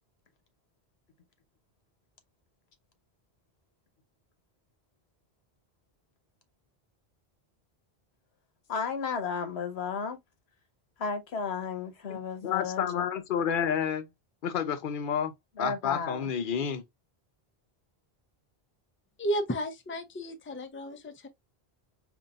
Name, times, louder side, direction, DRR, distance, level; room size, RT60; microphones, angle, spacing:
voice 1, 8.7-10.2 11.0-13.1 15.6-16.3, left 5 dB, 90° left, 1.2 m, -33 dB
voice 2, 12.1-14.1 14.4-15.3 15.6-16.8, left 8 dB, 60° left, 0.8 m, -30 dB
voice 3, 19.2-21.3, equal, 15° left, 0.5 m, -33 dB
5.3 x 2.6 x 2.3 m
omnidirectional pair, 1.0 m